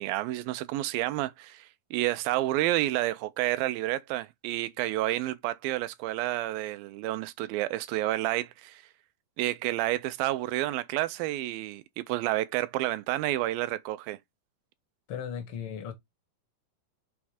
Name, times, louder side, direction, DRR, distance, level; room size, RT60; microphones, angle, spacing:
voice 1, 0.0-8.8 9.4-14.2, right 16 dB, 80° right, 2.2 m, -30 dB
voice 2, 15.1-15.9, left 8 dB, 75° left, 1.2 m, -36 dB
6.4 x 3.5 x 4.8 m
omnidirectional pair, 4.2 m